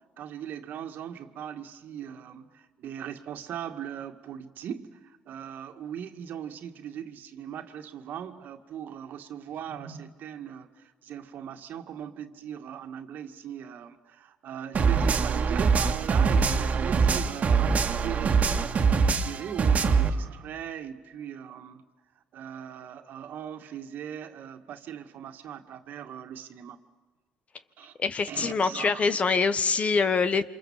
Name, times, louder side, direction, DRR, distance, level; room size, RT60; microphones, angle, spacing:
voice 1, 0.2-18.4 18.9-21.8 22.3-26.8 27.8-28.0 28.3-29.2, right 9 dB, 65° right, 6 dB, 2.1 m, -39 dB
sound 1, 14.7-20.1, right 5 dB, 45° right, 2.0 m, -23 dB
voice 2, 28.0-30.4, left 5 dB, 40° left, 13 dB, 1.5 m, -24 dB
28.0 x 26.5 x 7.5 m, 1.4 s
supercardioid pair, 70°, 3 cm